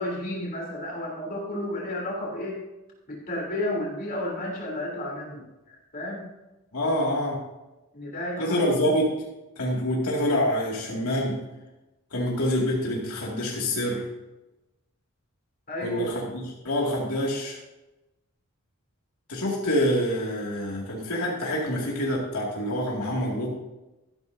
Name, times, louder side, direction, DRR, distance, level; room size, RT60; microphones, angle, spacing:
voice 1, 0.0-2.6 3.1-5.4 5.9-6.3 7.9-9.0 15.7-16.1, left 1 dB, 40° left, -3 dB, 3.1 m, -32 dB
voice 2, 6.7-7.4 8.4-9.1 9.6-11.4 12.1-14.0 15.8-17.6 19.3-23.5, equal, 80° left, -3 dB, 2.3 m, -26 dB
13.0 x 12.5 x 2.7 m, 1.0 s
head